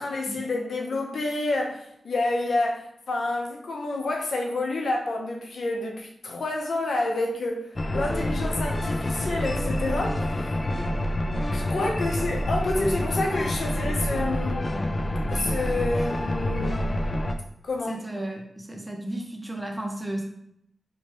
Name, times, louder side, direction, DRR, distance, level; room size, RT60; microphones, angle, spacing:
voice 1, 0.0-10.5 11.5-14.7 15.3-17.0 17.6-18.0, left 2 dB, 80° left, 0.7 m, -29 dB
sound 1, 7.8-17.3, left 1 dB, 30° left, 0.4 m, -27 dB
voice 2, 17.9-20.2, right 1 dB, 5° right, 0.7 m, -33 dB
4.4 x 3.1 x 3.0 m
wide cardioid pair, 105°, 0 cm